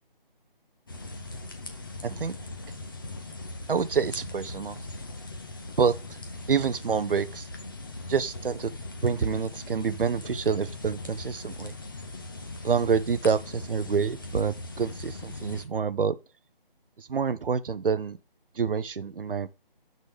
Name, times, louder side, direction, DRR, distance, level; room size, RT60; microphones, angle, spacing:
sound 1, 0.9-15.7, left 2 dB, 25° left, 0.8 m, -40 dB
voice 1, 2.0-2.3 3.7-4.9 5.8-6.2 6.5-7.5 8.1-8.7 9.0-11.7 12.6-16.1 17.0-18.2 18.5-19.5, right 6 dB, 70° right, 0.7 m, -27 dB
12.0 x 4.0 x 3.3 m
figure-of-eight pair, 165°, 29 cm